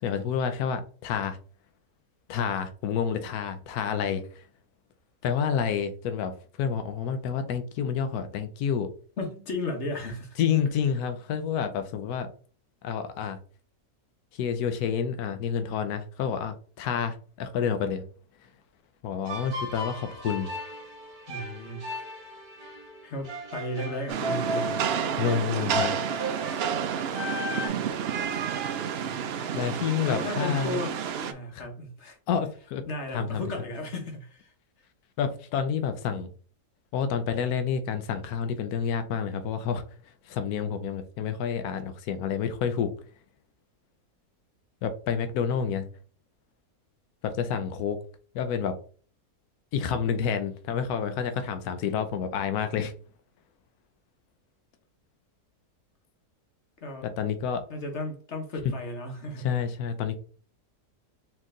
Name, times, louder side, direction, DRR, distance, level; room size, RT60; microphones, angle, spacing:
voice 1, 0.0-1.4 2.3-4.4 5.2-8.9 10.4-12.3 12.8-13.4 14.3-18.1 19.0-20.5 25.2-25.9 29.6-30.8 31.5-31.6 32.3-32.9 33.1-33.4 35.2-36.3 36.9-39.8 40.3-42.9 44.8-45.9 47.2-48.0 48.3-48.8 49.7-52.9 57.0-57.6 59.4-60.2, left 7 dB, 85° left, 1.1 m, -29 dB
voice 2, 9.2-10.4 21.3-21.8 22.3-22.4 23.0-24.8 30.0-30.9 31.2-32.2 32.9-34.5 56.8-57.1 57.7-59.5, left 1 dB, 50° left, 1.2 m, -34 dB
sound 1, 19.3-27.7, equal, 45° right, 1.5 m, -36 dB
Rain, 24.1-31.3, right 8 dB, 65° right, 0.6 m, -30 dB
4.4 x 3.0 x 3.7 m
omnidirectional pair, 1.6 m